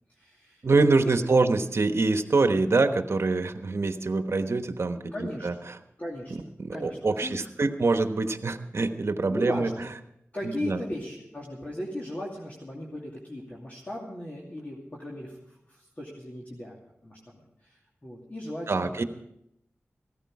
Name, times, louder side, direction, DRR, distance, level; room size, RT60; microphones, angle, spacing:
voice 1, 0.1-0.6 1.3-1.4 5.1-5.5 6.0-7.4 9.3-9.9 10.3-19.0, left 1 dB, 35° left, -4 dB, 2.5 m, -37 dB
voice 2, 0.6-5.0 5.4-5.5 6.6-9.7 10.6-10.8 18.7-19.0, right 3 dB, 60° right, 8 dB, 1.1 m, -24 dB
16.0 x 13.5 x 4.8 m, 0.77 s
wide cardioid pair, 85°, 5 cm